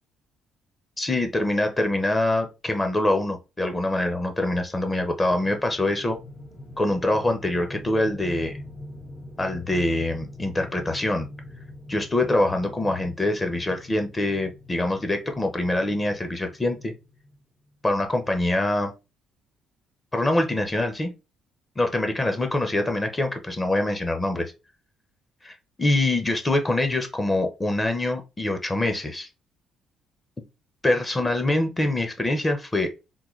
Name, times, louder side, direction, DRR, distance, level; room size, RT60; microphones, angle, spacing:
voice 1, 1.0-6.2 6.8-8.6 9.4-11.3 11.9-16.9 17.8-18.9 20.1-21.1 21.8-24.5 25.4-29.3 30.8-32.9, left 1 dB, 20° left, 5 dB, 0.6 m, -24 dB
sound 1, 5.2-17.4, left 1 dB, 50° left, 1.5 m, -43 dB
3.6 x 2.2 x 3.0 m, 0.28 s
cardioid pair, 110°, 0 cm